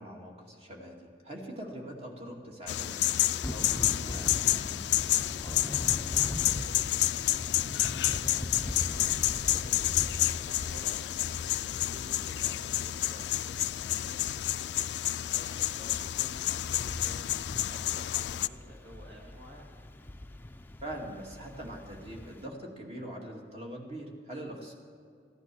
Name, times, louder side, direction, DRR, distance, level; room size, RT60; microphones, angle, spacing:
voice 1, 0.0-4.9 20.8-24.7, right 1 dB, 35° right, 0 dB, 2.3 m, -43 dB
sound 1, 2.7-18.5, left 14 dB, 75° left, 0.3 m, -30 dB
Thunder / Rain, 3.4-22.5, left 1 dB, 10° left, 0.5 m, -42 dB
voice 2, 5.4-11.3 11.6-14.4 15.1-17.4 17.7-19.8, equal, 70° right, -2 dB, 1.9 m, -52 dB
15.5 x 11.0 x 6.2 m, 2.3 s
head